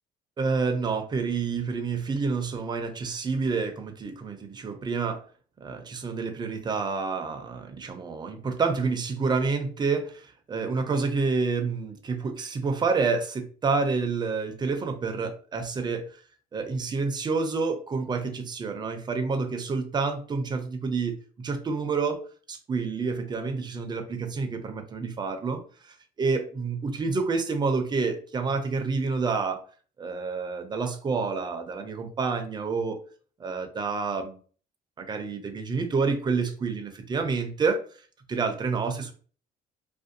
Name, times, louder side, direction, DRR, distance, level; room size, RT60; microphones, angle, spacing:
voice 1, 0.4-5.2 5.6-16.2 16.5-22.2 22.5-29.6 30.0-33.0 33.4-34.4 35.0-37.8 38.3-39.1, right 4 dB, 25° right, 6 dB, 0.4 m, -28 dB
2.5 x 2.1 x 2.6 m, 0.42 s
cardioid pair, 110°, 17 cm